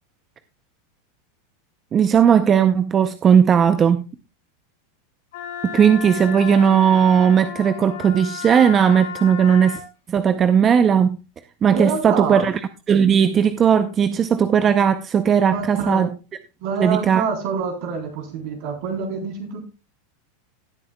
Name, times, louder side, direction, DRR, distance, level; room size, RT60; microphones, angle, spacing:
voice 1, 1.9-4.1 5.6-9.8 10.1-11.2 11.6-12.6 12.9-16.1 16.8-17.2, right 7 dB, 25° right, 0.6 m, -17 dB
Wind instrument woodwind instrument, 5.3-9.9, left 8 dB, 75° left, 5.4 m, -33 dB
voice 2, 11.7-12.5 15.5-16.1 16.6-19.6, right 5 dB, 60° right, 3.5 m, -26 dB
17.5 x 8.4 x 2.2 m
supercardioid pair, 125°, 0 cm